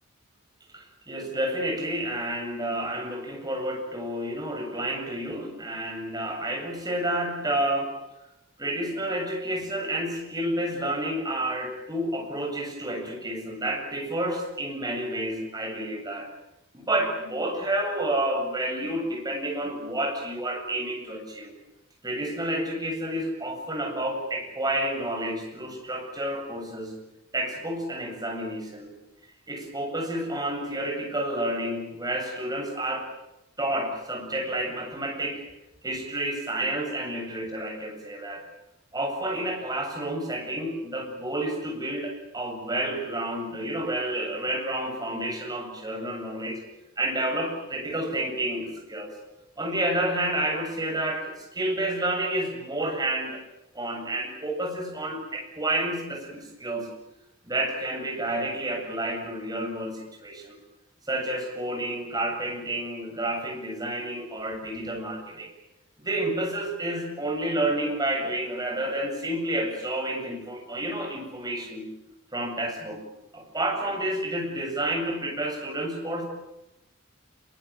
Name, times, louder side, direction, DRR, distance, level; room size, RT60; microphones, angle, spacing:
voice 1, 0.7-7.9 8.6-16.3 16.7-21.5 22.0-27.0 27.3-28.9 29.5-33.1 33.6-35.4 35.8-38.4 38.9-46.6 47.0-49.1 49.6-53.4 53.7-56.9 57.4-60.6 61.1-65.5 66.0-71.9 72.3-73.0 73.3-76.2, right 1 dB, 20° right, 2 dB, 7.9 m, -30 dB
26.5 x 23.5 x 8.7 m, 0.92 s
head